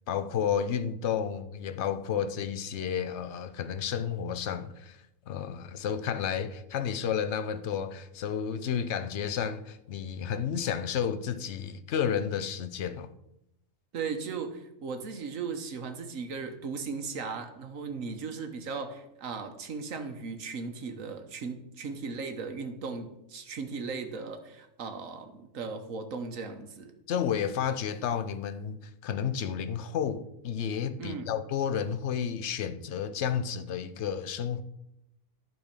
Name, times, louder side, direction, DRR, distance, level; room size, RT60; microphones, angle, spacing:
voice 1, 0.1-5.0 5.3-13.1 27.1-34.6, left 8 dB, 65° left, 0.9 m, -31 dB
voice 2, 13.9-26.9 31.0-31.3, right 5 dB, 85° right, 1.5 m, -37 dB
11.5 x 4.4 x 6.6 m
omnidirectional pair, 1.3 m